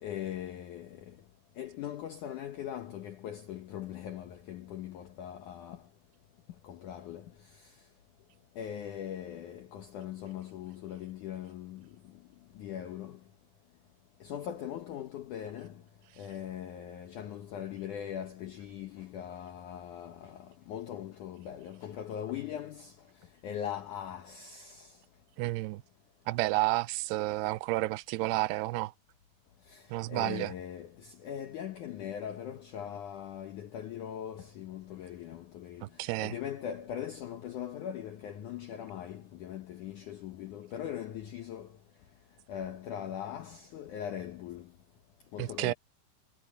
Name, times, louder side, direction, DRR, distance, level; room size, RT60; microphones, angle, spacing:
voice 1, 0.0-1.1 1.6-5.8 6.6-7.3 8.6-11.9 12.6-13.2 14.2-15.8 16.2-22.9 23.4-24.9 29.7-35.9 36.2-41.7 42.5-44.7 45.3-45.7, left 10 dB, 85° left, 1.7 m, -40 dB
voice 2, 25.4-25.8 26.3-28.9 29.9-30.5 35.8-36.3 45.4-45.7, right 20 dB, 80° right, 2.4 m, -31 dB
omnidirectional pair, 5.2 m